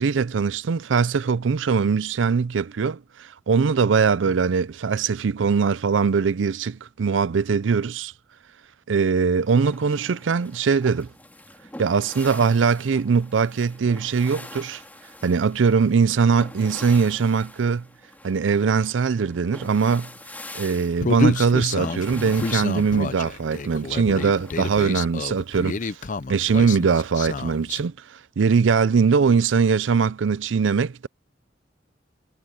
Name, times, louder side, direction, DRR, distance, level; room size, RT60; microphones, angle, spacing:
voice 1, 0.0-8.1 8.9-11.1 11.8-14.8 15.2-17.9 18.2-20.1 20.5-25.9 26.3-31.1, right 5 dB, 80° right, 0.5 m, -21 dB
sound 1, 9.3-24.8, left 1 dB, 10° left, 2.4 m, -44 dB
Human voice, 21.0-27.8, left 3 dB, 45° left, 0.6 m, -29 dB
head